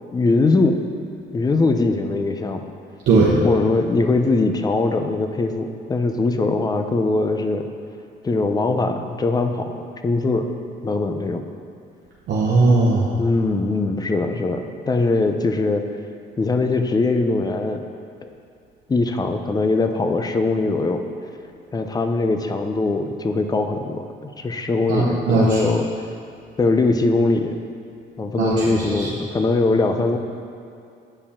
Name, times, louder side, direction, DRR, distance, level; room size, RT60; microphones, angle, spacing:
voice 1, 0.1-0.8 1.3-2.6 3.4-7.7 8.2-10.5 10.8-11.4 13.2-15.8 16.4-17.8 18.2-18.3 18.9-21.0 21.7-25.9 26.6-27.5 28.2-30.2, left 3 dB, 20° left, 6 dB, 0.5 m, -21 dB
voice 2, 3.1-3.4 12.3-13.1 24.9-25.6 28.4-29.1, right 3 dB, 60° right, -5 dB, 0.9 m, -18 dB
8.8 x 4.8 x 3.6 m, 2.5 s
cardioid pair, 105°, 20 cm